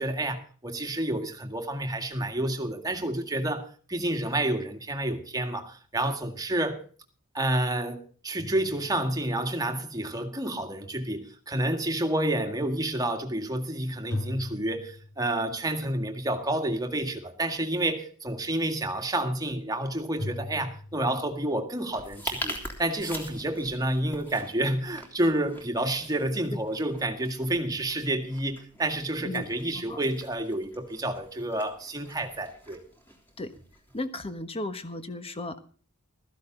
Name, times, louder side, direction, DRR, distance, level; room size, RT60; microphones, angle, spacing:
voice 1, 0.0-6.8 7.3-32.8, right 1 dB, 15° right, 1.9 m, -29 dB
sound 1, 8.4-9.5 14.1-15.7 20.2-21.3, left 1 dB, 65° left, 2.6 m, -38 dB
sound 2, 21.9-34.0, equal, 10° left, 3.4 m, -43 dB
voice 2, 33.9-35.6, left 2 dB, 25° left, 1.3 m, -35 dB
15.5 x 14.0 x 3.9 m
head